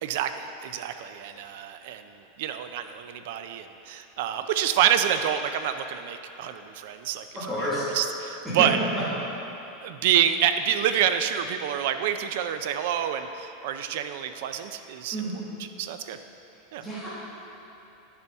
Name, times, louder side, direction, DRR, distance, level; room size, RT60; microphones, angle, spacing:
voice 1, 0.0-7.5 7.9-8.8 9.8-15.4 15.8-16.2 16.7-16.8, right 9 dB, 55° right, 9 dB, 0.4 m, -27 dB
voice 2, 7.5-7.9 8.6-8.7 15.1-15.4 16.8-17.1, equal, 5° right, -11 dB, 1.7 m, -29 dB
10.0 x 6.8 x 3.5 m, 3.0 s
supercardioid pair, 175°, 0 cm